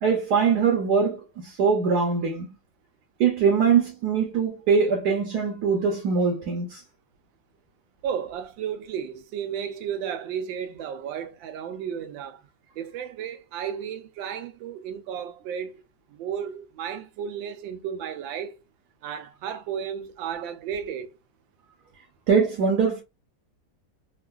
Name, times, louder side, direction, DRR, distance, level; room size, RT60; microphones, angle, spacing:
voice 1, 0.0-2.5 3.2-6.8 22.3-23.0, right 5 dB, 65° right, 1.2 m, -22 dB
voice 2, 8.0-12.4 12.8-15.8 16.1-18.6 19.0-21.1, right 8 dB, 85° right, 1.3 m, -33 dB
3.6 x 2.3 x 2.3 m
omnidirectional pair, 2.0 m